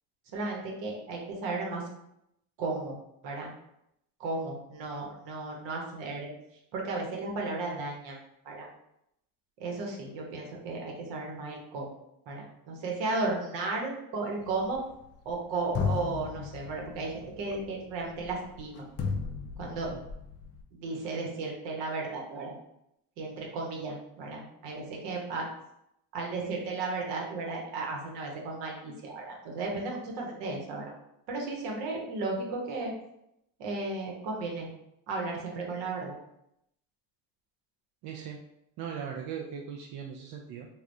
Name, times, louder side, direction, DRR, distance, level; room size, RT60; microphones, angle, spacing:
voice 1, 0.3-1.8 2.6-3.0 3.2-3.5 4.2-6.3 6.7-8.2 8.4-8.7 9.6-11.9 12.3-14.8 15.2-18.8 19.6-19.9 20.7-22.6 23.2-25.5 26.1-30.9 31.3-32.9 33.6-34.7 35.1-36.2, right 3 dB, 70° right, -1 dB, 1.1 m, -34 dB
sound 1, 14.4-15.4 15.7-20.6, left 5 dB, 35° left, 0.4 m, -35 dB
voice 2, 38.0-38.4 38.8-40.7, right 7 dB, 55° right, 1 dB, 0.5 m, -39 dB
3.4 x 2.4 x 2.6 m, 0.80 s
supercardioid pair, 95°, 44 cm